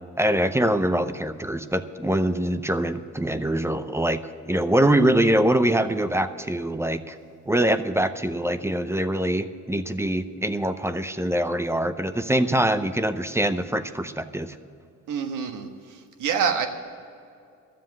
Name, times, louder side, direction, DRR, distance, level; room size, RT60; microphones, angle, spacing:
voice 1, 0.2-7.2 7.5-14.5, right 1 dB, 10° right, 11 dB, 0.6 m, -24 dB
voice 2, 15.1-16.7, right 7 dB, 85° right, 6 dB, 1.4 m, -27 dB
12.5 x 7.6 x 9.2 m, 2.5 s
cardioid pair, 90°, 30 cm